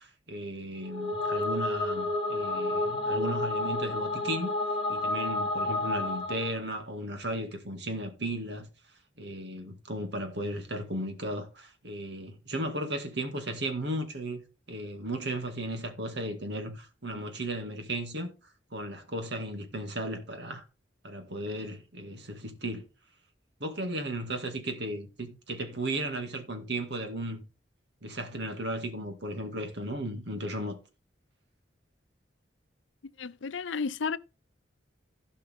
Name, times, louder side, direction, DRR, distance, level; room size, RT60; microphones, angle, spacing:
voice 1, 0.0-4.5 4.9-8.7 9.2-14.4 14.7-18.3 18.7-20.6 21.0-22.9 23.6-27.4 28.0-30.8, right 1 dB, 65° right, 2.1 m, -35 dB
sound 1, 0.8-6.6, left 2 dB, 30° left, 1.4 m, -30 dB
voice 2, 33.2-34.2, left 5 dB, 90° left, 0.6 m, -32 dB
16.0 x 5.5 x 3.5 m
head